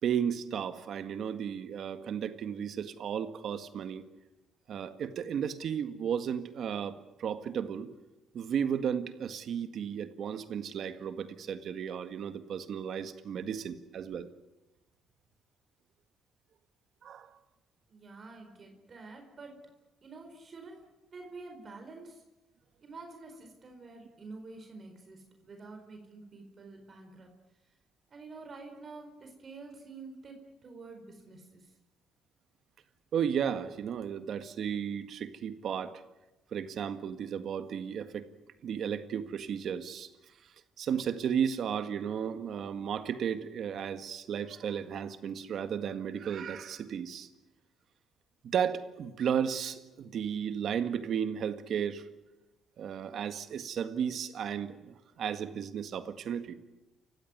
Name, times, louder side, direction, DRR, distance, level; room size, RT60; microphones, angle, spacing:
voice 1, 0.0-4.1 4.7-7.9 8.3-14.3 17.0-17.3 33.1-36.0 36.5-38.3 38.6-40.1 40.8-47.3 48.4-52.0 52.8-56.5, right 8 dB, 60° right, 9 dB, 1.8 m, -34 dB
voice 2, 17.9-19.6 20.0-22.2 22.8-27.3 28.1-30.4 30.6-31.7, right 3 dB, 40° right, 3 dB, 4.5 m, -48 dB
29.0 x 15.5 x 9.7 m, 1.0 s
cardioid pair, 100°, 0 cm